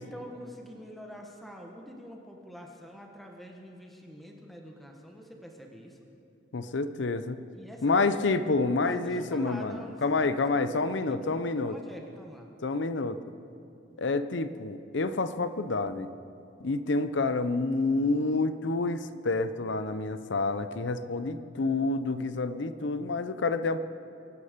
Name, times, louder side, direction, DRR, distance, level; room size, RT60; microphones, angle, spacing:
voice 1, 0.0-6.0 7.5-8.3 8.8-12.5 17.2-17.3, equal, ahead, 1 dB, 1.4 m, -46 dB
voice 2, 6.5-7.4 7.8-11.8 12.6-13.2 14.0-16.1 16.6-23.8, left 3 dB, 70° left, 12 dB, 0.7 m, -28 dB
24.0 x 9.8 x 5.2 m, 2.7 s
head